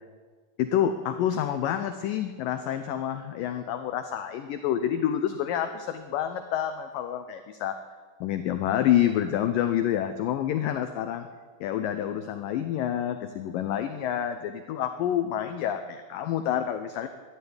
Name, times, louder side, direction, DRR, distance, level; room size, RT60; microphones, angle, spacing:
voice 1, 0.6-7.7 8.2-11.3 11.6-17.1, left 10 dB, 85° left, 8 dB, 1.9 m, -28 dB
13.0 x 11.0 x 9.6 m, 1.5 s
omnidirectional pair, 4.8 m